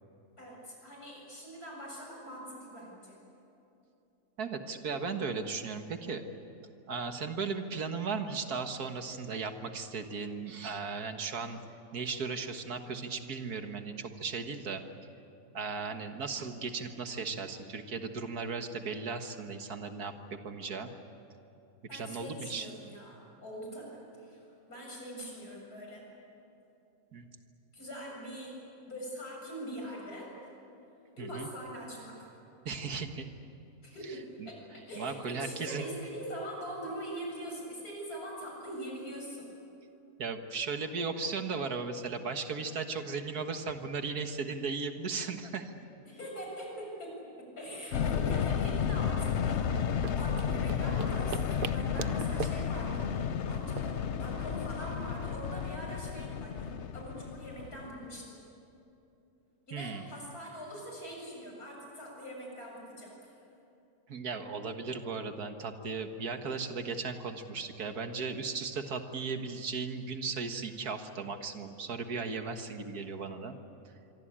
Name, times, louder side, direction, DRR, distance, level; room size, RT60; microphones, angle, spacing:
voice 1, 0.4-3.2 21.9-26.0 27.7-28.5 28.9-30.3 31.2-32.3 33.8-39.5 46.1-49.7 49.9-53.1 53.5-56.7 56.9-58.4 59.7-63.2, equal, 70° left, -1 dB, 8.0 m, -43 dB
voice 2, 4.4-6.2 6.9-11.6 11.9-14.8 15.5-20.9 21.9-22.7 27.1-27.3 31.2-31.5 32.7-33.3 34.4-34.5 35.0-35.9 40.2-45.7 59.7-60.1 64.1-73.6, right 4 dB, 75° right, 7 dB, 2.0 m, -36 dB
sound 1, 47.9-58.1, left 7 dB, 55° left, 1.0 m, -32 dB
sound 2, 49.6-54.8, right 7 dB, 55° right, 0.6 m, -42 dB
25.5 x 24.0 x 8.9 m, 2.8 s
omnidirectional pair, 1.6 m